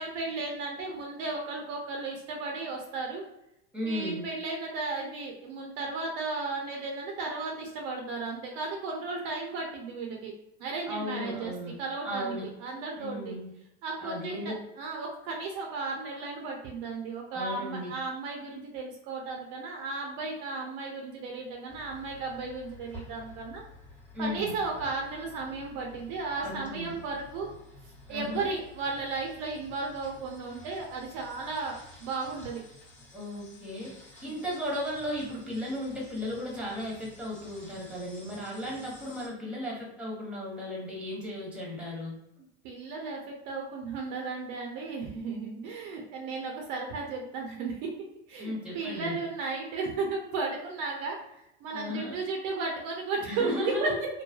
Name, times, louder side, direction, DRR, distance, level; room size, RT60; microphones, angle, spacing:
voice 1, 0.0-3.2 3.8-10.3 10.6-11.5 11.8-13.4 13.8-23.6 24.2-27.5 28.1-32.6 34.2-34.3 42.6-47.9 48.3-51.2 51.6-54.1, right 3 dB, 55° right, 0 dB, 0.6 m, -34 dB
voice 2, 3.7-4.2 10.9-11.7 12.0-12.5 13.0-13.5 14.0-14.6 17.3-17.9 24.1-24.6 26.4-26.9 28.1-28.5 33.1-33.9 34.2-42.1 48.4-49.2 51.7-52.2 53.3-54.0, left 1 dB, 5° right, -3 dB, 1.0 m, -35 dB
sound 1, 21.7-39.3, left 1 dB, 20° left, 1.2 m, -51 dB
3.1 x 2.1 x 2.3 m, 0.83 s
hypercardioid pair, 95°, 35 cm